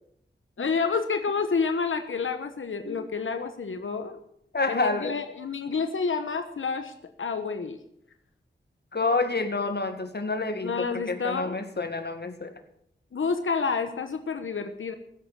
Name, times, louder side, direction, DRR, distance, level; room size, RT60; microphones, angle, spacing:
voice 1, 0.6-4.2 4.7-7.8 10.6-11.6 13.1-14.9, left 5 dB, 85° left, 8 dB, 1.1 m, -29 dB
voice 2, 4.5-5.1 8.9-12.6, left 3 dB, 55° left, 8 dB, 1.9 m, -28 dB
16.0 x 8.4 x 7.3 m, 0.73 s
cardioid pair, 45°, 20 cm